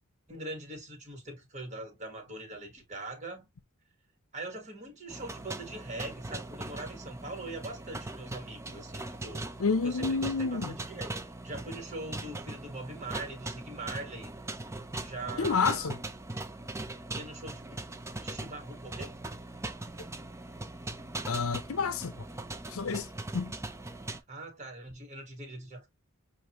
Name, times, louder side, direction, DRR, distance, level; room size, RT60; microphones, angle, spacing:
voice 1, 0.3-3.5 4.3-9.5 9.8-11.1 11.4-14.3 15.0-16.0 17.1-17.8 18.2-19.2 24.3-25.9, right 2 dB, 30° right, 1.7 m, -42 dB
sound 1, 5.1-24.2, right 2 dB, 15° right, 0.4 m, -40 dB
voice 2, 9.6-10.7 15.4-16.0 21.3-22.1 22.7-23.1 23.3-23.5, left 5 dB, 75° left, 0.6 m, -29 dB
6.5 x 2.5 x 3.0 m
head